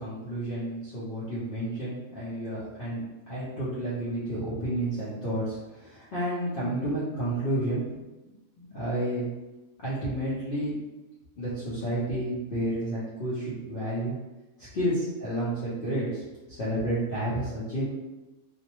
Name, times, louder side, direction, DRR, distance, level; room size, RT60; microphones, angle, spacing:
voice 1, 0.0-7.8 8.6-9.2 9.8-10.7 11.4-14.2 14.6-16.2 16.5-17.8, right 1 dB, 50° left, -10 dB, 0.7 m, -31 dB
2.6 x 2.0 x 2.9 m, 1.1 s
omnidirectional pair, 1.5 m